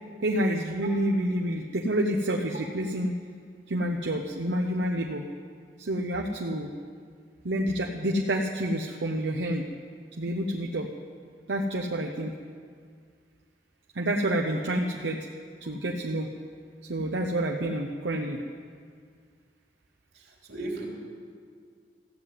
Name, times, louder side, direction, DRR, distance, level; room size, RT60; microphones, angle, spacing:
voice 1, 0.2-3.2 3.7-5.2 5.8-6.7 7.4-9.6 10.2-10.9 11.5-12.3 13.9-15.3 15.6-16.3 16.9-18.4, right 1 dB, 85° right, 1 dB, 0.8 m, -28 dB
voice 2, 20.1-20.9, right 2 dB, 65° right, 0 dB, 3.0 m, -36 dB
15.0 x 7.7 x 9.5 m, 2.1 s
head